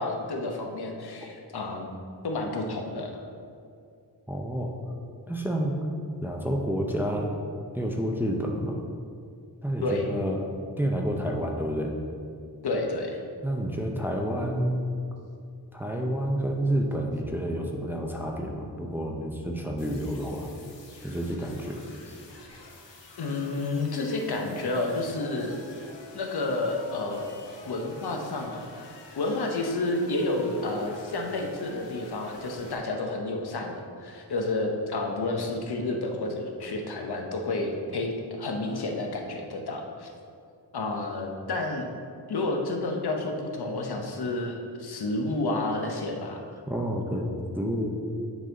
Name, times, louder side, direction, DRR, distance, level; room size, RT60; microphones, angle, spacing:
voice 1, 0.0-1.9 2.2-3.1 9.8-10.1 12.6-13.2 23.2-25.6 26.1-27.3 27.6-28.6 29.2-40.1 40.7-41.9 42.3-46.4, left 2 dB, 65° left, 2 dB, 0.8 m, -30 dB
voice 2, 4.3-4.7 5.3-5.8 6.2-7.3 7.7-8.8 9.6-10.5 10.8-11.9 13.4-14.8 15.7-20.5 21.0-21.8 46.7-47.9, equal, 5° right, 0 dB, 0.6 m, -29 dB
sound 1, 19.8-32.7, left 3 dB, 85° left, 1.1 m, -48 dB
9.3 x 4.1 x 3.9 m, 2.4 s
wide cardioid pair, 125°, 42 cm